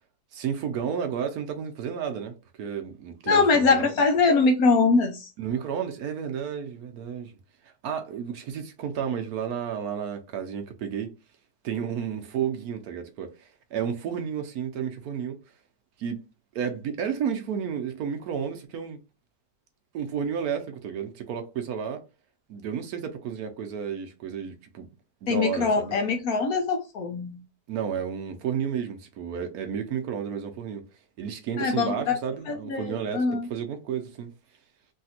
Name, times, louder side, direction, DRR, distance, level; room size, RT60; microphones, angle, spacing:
voice 1, 0.3-3.9 5.4-7.3 7.6-11.1 11.6-15.4 16.0-16.2 16.5-19.0 19.9-22.0 22.5-24.9 25.2-26.0 27.7-30.8 31.2-34.3, right 7 dB, 70° right, 1.0 m, -32 dB
voice 2, 3.3-5.3 25.3-27.4 31.6-31.9 32.5-33.5, left 4 dB, 65° left, 1.1 m, -23 dB
3.2 x 2.7 x 2.7 m
omnidirectional pair, 1.8 m